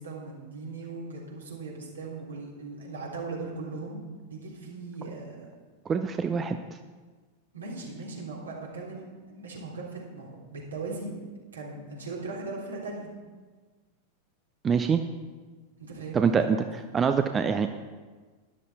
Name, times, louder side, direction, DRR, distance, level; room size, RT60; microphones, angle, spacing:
voice 1, 0.0-5.5 7.5-11.1 11.5-13.1 15.8-16.3, right 3 dB, 70° right, -3 dB, 3.4 m, -39 dB
voice 2, 5.9-6.6 14.6-15.0 16.1-16.6 16.9-17.7, right 6 dB, 20° right, 8 dB, 0.6 m, -24 dB
12.5 x 11.0 x 4.2 m, 1.4 s
figure-of-eight pair, 90°, 0 cm